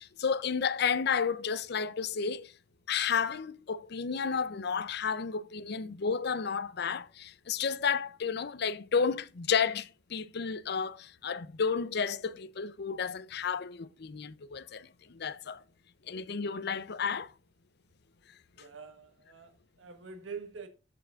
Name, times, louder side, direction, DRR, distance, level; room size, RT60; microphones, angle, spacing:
voice 1, 0.0-2.5 2.9-15.6 16.1-17.3, left 6 dB, 55° left, 0.6 m, -32 dB
voice 2, 18.6-20.7, right 5 dB, 85° right, 1.3 m, -45 dB
13.0 x 5.7 x 2.4 m
head